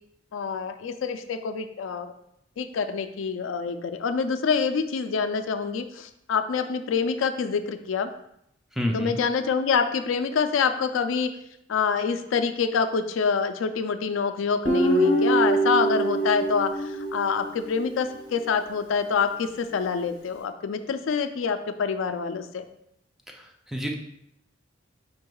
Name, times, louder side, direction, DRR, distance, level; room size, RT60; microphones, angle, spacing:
voice 1, 0.3-2.1 2.6-8.1 8.9-11.3 11.7-22.6, left 5 dB, 80° left, 9 dB, 0.3 m, -26 dB
voice 2, 8.7-9.2 23.3-23.9, equal, ahead, 1 dB, 0.4 m, -29 dB
Guitar, 14.6-17.9, right 1 dB, 30° left, 1.3 m, -24 dB
5.1 x 4.6 x 2.3 m, 0.78 s
head